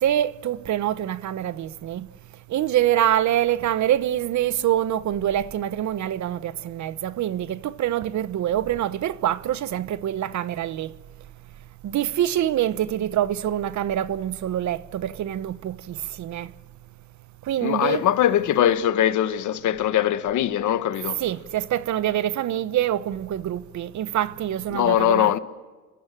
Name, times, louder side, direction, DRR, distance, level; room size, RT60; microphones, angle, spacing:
voice 1, 0.0-2.1 2.5-10.9 11.8-16.5 17.5-18.1 21.2-25.3, right 11 dB, 70° right, 1.1 m, -25 dB
voice 2, 17.6-21.2 24.7-25.4, left 11 dB, 75° left, 1.5 m, -21 dB
30.0 x 24.5 x 7.5 m
cardioid pair, 90°, 30 cm